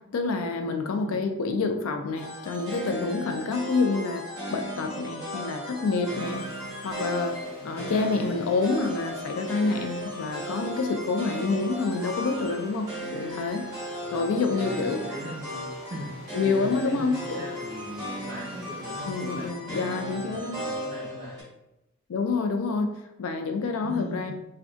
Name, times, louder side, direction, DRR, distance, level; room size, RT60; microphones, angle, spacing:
voice 1, 0.1-4.2 4.5-6.4 6.8-7.4 7.6-12.9 13.1-13.6 14.1-15.0 16.3-17.4 19.1-20.6 22.1-22.9 23.2-24.3, left 4 dB, 70° left, 5 dB, 0.4 m, -27 dB
voice 2, 0.7-1.3 7.5-7.9 12.1-12.5 14.0-14.2 14.5-16.1 16.4-21.4 23.8-24.3, equal, 40° right, -6 dB, 0.7 m, -41 dB
sound 1, 2.2-21.4, equal, 20° right, 1.1 m, -36 dB
sound 2, 6.2-19.5, left 2 dB, 15° left, 1.0 m, -49 dB
3.6 x 2.2 x 2.4 m, 0.91 s
head